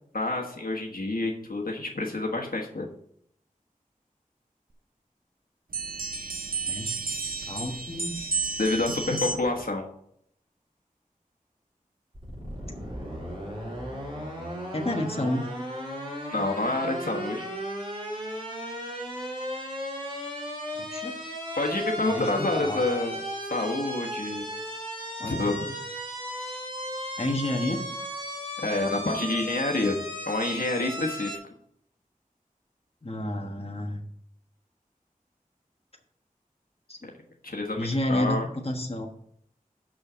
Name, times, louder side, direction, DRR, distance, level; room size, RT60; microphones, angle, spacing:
voice 1, 0.1-2.9 8.6-9.8 16.3-17.5 21.6-23.2 23.5-24.5 25.2-25.7 28.6-30.0 30.3-31.4 37.4-37.8 38.1-38.5, left 2 dB, 85° left, 0 dB, 1.3 m, -28 dB
sound 1, 5.7-9.6, right 4 dB, 80° right, 1.0 m, -32 dB
voice 2, 7.5-8.3 14.7-15.5 20.8-21.1 22.1-22.8 25.2-25.6 27.2-27.8 33.0-34.0 36.9-37.0 37.8-39.1, left 1 dB, 45° left, 2 dB, 1.3 m, -30 dB
sound 2, 12.1-31.4, equal, 35° right, 3.7 m, -36 dB
6.3 x 6.2 x 6.2 m, 0.70 s
wide cardioid pair, 50°, 15 cm